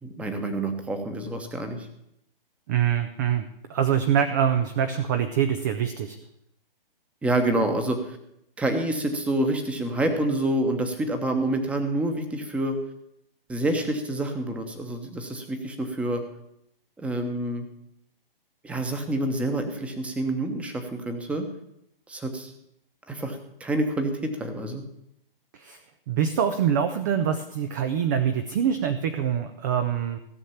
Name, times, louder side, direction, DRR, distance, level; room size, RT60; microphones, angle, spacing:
voice 1, 0.0-1.9 7.2-8.2 8.6-12.7 13.5-16.2 17.0-17.7 18.6-21.5 22.1-22.5 23.1-24.8, right 1 dB, 5° right, 6 dB, 1.1 m, -27 dB
voice 2, 2.7-6.2 25.6-25.8 26.1-30.2, right 8 dB, 20° right, 9 dB, 0.5 m, -24 dB
16.0 x 6.5 x 7.2 m, 0.77 s
hypercardioid pair, 145°, 29 cm